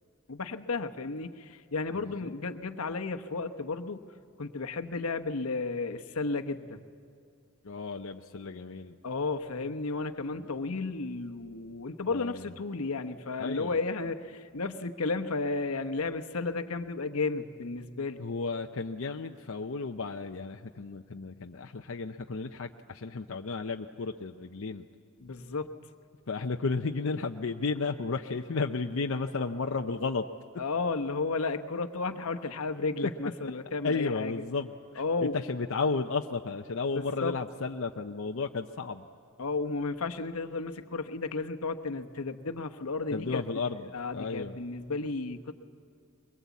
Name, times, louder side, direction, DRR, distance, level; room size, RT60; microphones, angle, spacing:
voice 1, 0.3-4.0 4.4-6.8 9.0-18.2 25.2-25.7 30.6-34.3 35.0-35.3 36.9-37.3 39.4-43.4 43.8-45.5, left 3 dB, 85° left, 7 dB, 1.0 m, -33 dB
voice 2, 1.9-2.3 7.6-8.9 10.4-10.5 12.1-12.5 13.4-13.8 18.2-24.9 26.3-30.3 33.0-33.1 33.8-34.7 35.3-39.1 43.1-44.6, left 4 dB, 65° left, 4 dB, 0.7 m, -33 dB
22.5 x 22.5 x 8.3 m, 2.5 s
head